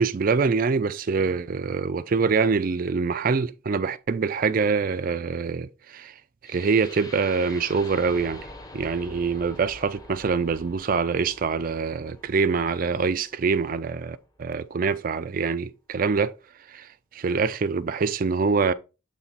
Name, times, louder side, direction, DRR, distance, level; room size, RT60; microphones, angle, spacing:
voice 1, 0.0-6.1 6.5-8.4 8.7-16.3 16.7-16.9 17.1-18.7, right 5 dB, 45° right, 0.4 m, -25 dB
sound 1, 6.4-14.5, left 1 dB, 20° left, 0.7 m, -46 dB
7.2 x 3.3 x 4.0 m
head